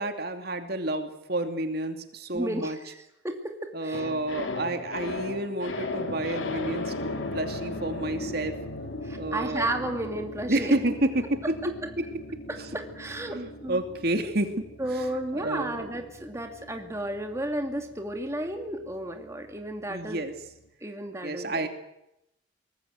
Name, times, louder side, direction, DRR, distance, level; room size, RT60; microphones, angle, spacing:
voice 1, 0.0-2.8 3.7-6.9 7.3-8.6 9.1-9.7 10.5-11.5 12.0-12.1 13.3-14.5 14.9-15.0 15.3-15.9 19.9-20.3 21.2-21.7, right 1 dB, 55° right, 6 dB, 2.6 m, -29 dB
voice 2, 2.3-4.1 9.0-10.7 11.6-11.9 12.5-13.8 14.8-20.2 20.8-21.7, right 1 dB, 15° right, 4 dB, 2.3 m, -33 dB
sound 1, 3.9-20.3 20.5-20.7, left 2 dB, 90° left, 2.7 m, -38 dB
24.0 x 20.0 x 8.0 m, 0.85 s
head